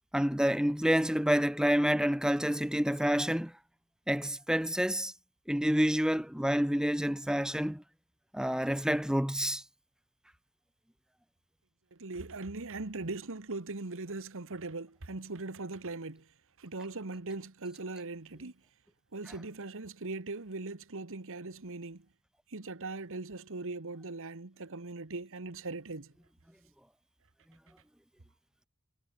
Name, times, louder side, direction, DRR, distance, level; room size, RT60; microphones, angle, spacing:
voice 1, 0.1-3.5 4.1-5.1 5.5-7.8 8.3-9.6 19.3-19.4, equal, 5° right, 1.1 m, -28 dB
voice 2, 12.0-16.2 16.6-18.5 19.1-22.0 22.5-26.1, right 3 dB, 65° right, 1.5 m, -40 dB
head